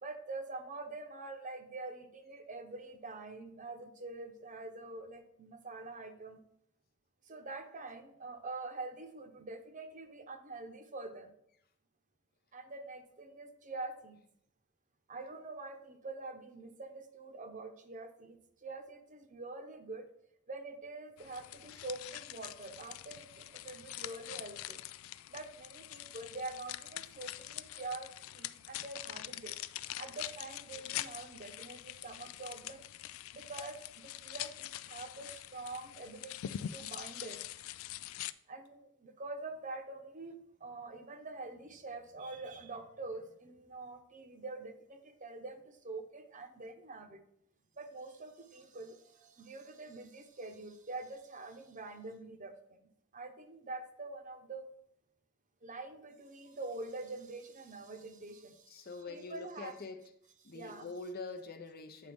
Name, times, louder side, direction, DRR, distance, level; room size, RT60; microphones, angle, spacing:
voice 1, 0.0-6.4 7.3-11.3 12.5-14.2 15.1-20.1 20.5-24.8 25.3-29.5 30.0-32.8 33.3-37.4 38.5-47.2 47.8-52.5 53.1-54.7 55.6-59.7 60.5-60.9, right 3 dB, 40° right, 6 dB, 0.8 m, -45 dB
sound 1, 21.2-38.3, left 13 dB, 75° left, 0.3 m, -44 dB
voice 2, 58.7-60.0 60.4-62.1, left 3 dB, 45° left, 7 dB, 0.7 m, -44 dB
9.2 x 5.1 x 3.5 m, 0.72 s
head